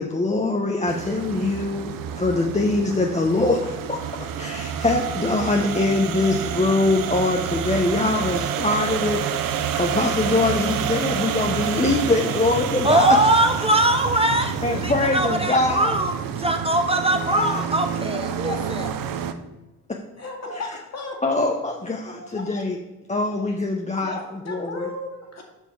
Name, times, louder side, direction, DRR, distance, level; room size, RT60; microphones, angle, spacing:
voice 1, 0.0-13.5 14.6-16.0 17.3-17.7 18.4-18.9 19.9-20.0 21.2-22.8 23.1-24.2 24.5-24.9, left 2 dB, 20° left, 1 dB, 0.8 m, -23 dB
sound 1, 0.9-19.3, right 8 dB, 70° right, 0.7 m, -28 dB
voice 2, 12.8-18.9, right 1 dB, 15° right, 4 dB, 0.8 m, -21 dB
voice 3, 20.2-21.4 22.2-22.4 24.0-25.4, left 2 dB, 50° left, 1 dB, 2.2 m, -35 dB
7.1 x 5.4 x 4.5 m, 1.1 s
supercardioid pair, 55°, 35 cm